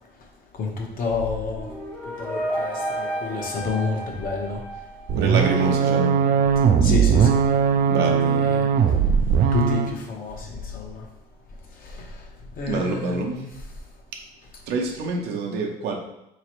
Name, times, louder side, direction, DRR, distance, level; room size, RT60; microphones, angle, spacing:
voice 1, 0.5-1.7 2.0-4.6 5.3-5.8 6.6-7.4 8.2-11.1 11.6-13.5, left 4 dB, 60° left, 0 dB, 1.0 m, -30 dB
sound 1, 1.5-5.4, right 1 dB, 10° left, 0.6 m, -31 dB
sound 2, 5.1-10.0, right 7 dB, 55° right, 0.4 m, -19 dB
voice 2, 5.2-6.2 7.9-8.4 12.7-13.3 14.7-15.9, right 3 dB, 80° right, 2 dB, 0.7 m, -26 dB
4.0 x 3.1 x 3.0 m, 0.86 s
cardioid pair, 110°, 17 cm